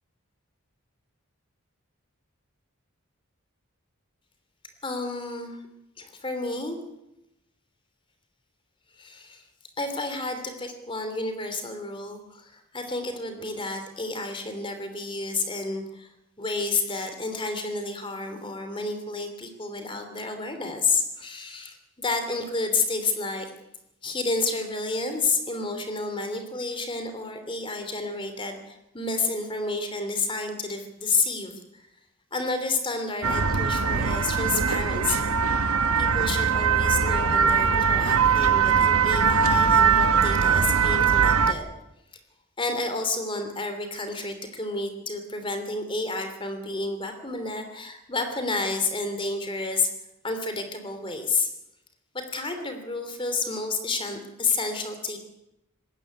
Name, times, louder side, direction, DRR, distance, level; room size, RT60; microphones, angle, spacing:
voice 1, 4.8-5.6 6.0-6.8 9.0-9.4 9.8-16.1 16.4-23.5 24.0-31.9 32.3-35.4 36.0-41.7 42.6-49.9 50.2-51.5 52.1-55.2, left 3 dB, 25° left, 7 dB, 3.0 m, -30 dB
sound 1, 33.2-41.5, right 6 dB, 90° right, 1.1 m, -21 dB
19.5 x 17.0 x 9.5 m, 0.89 s
head